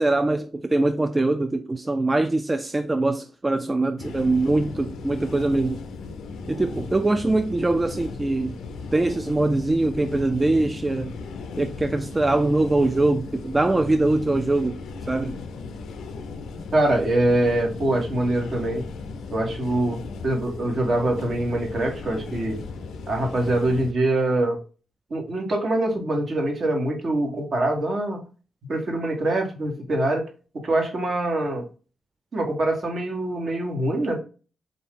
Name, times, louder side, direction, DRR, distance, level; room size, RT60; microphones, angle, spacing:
voice 1, 0.0-5.8 6.5-8.6 8.9-11.1 11.6-14.8 15.1-15.4, right 2 dB, 25° right, 0.3 m, -23 dB
sound 1, 4.0-23.9, left 4 dB, 90° left, 0.5 m, -36 dB
voice 2, 16.7-18.8 19.3-22.6 23.1-24.6 25.1-28.2 28.7-30.3 30.6-31.7 32.3-34.2, right 1 dB, 60° right, 1.3 m, -24 dB
3.8 x 2.6 x 3.6 m
cardioid pair, 65°, 0 cm